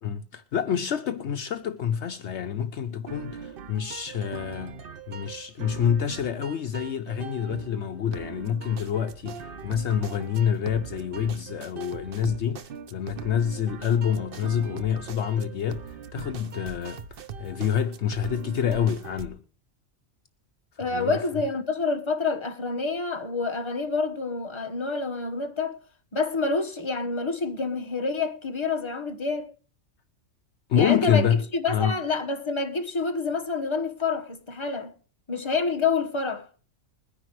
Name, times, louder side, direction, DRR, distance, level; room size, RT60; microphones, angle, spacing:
voice 1, 0.0-4.8 5.1-12.6 12.9-19.4 20.8-21.2 30.7-31.4 31.7-31.9, left 8 dB, 65° left, 1.0 m, -27 dB
sound 1, 3.1-19.3, right 6 dB, 50° right, 0.9 m, -41 dB
voice 2, 20.8-25.8 26.1-29.5 30.8-31.3 31.5-34.9 35.3-36.5, left 4 dB, 25° left, 1.3 m, -28 dB
21.0 x 10.0 x 3.1 m
omnidirectional pair, 1.3 m